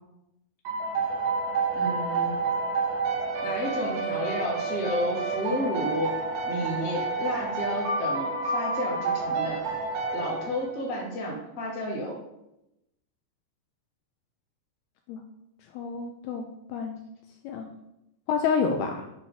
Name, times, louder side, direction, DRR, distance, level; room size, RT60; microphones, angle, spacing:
sound 1, 0.7-11.0, right 4 dB, 80° right, 4.7 m, -29 dB
voice 1, 1.7-2.3 3.4-6.2 6.4-9.6 10.1-12.2, equal, 25° left, -4 dB, 2.5 m, -31 dB
voice 2, 15.7-16.4 16.7-17.0 17.4-17.7 18.3-19.1, left 6 dB, 90° left, 4 dB, 2.3 m, -28 dB
9.9 x 4.6 x 5.8 m, 0.88 s
omnidirectional pair, 5.2 m